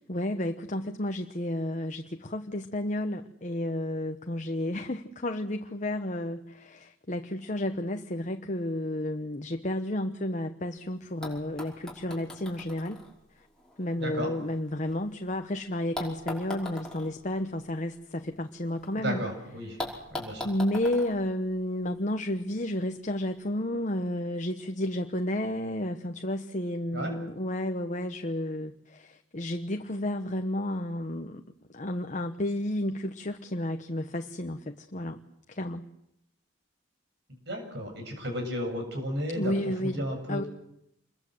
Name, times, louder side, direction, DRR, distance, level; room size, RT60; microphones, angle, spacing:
voice 1, 0.1-13.0 13.4-13.5 13.8-19.2 19.7-20.0 20.4-31.4 31.7-35.2 35.5-35.8 39.3-40.0 40.3-40.4, left 1 dB, 40° left, 6 dB, 1.1 m, -32 dB
sound 1, 10.8-10.9 11.2-15.3 15.9-18.9 19.2-19.3 19.8-22.2 23.2-23.3, left 1 dB, 5° left, 5.4 m, -41 dB
voice 2, 14.0-14.3 19.0-19.8 20.1-20.5 26.9-27.1 37.5-39.5 39.8-40.5, equal, 60° right, 4 dB, 7.6 m, -33 dB
27.5 x 22.0 x 7.9 m, 0.79 s
head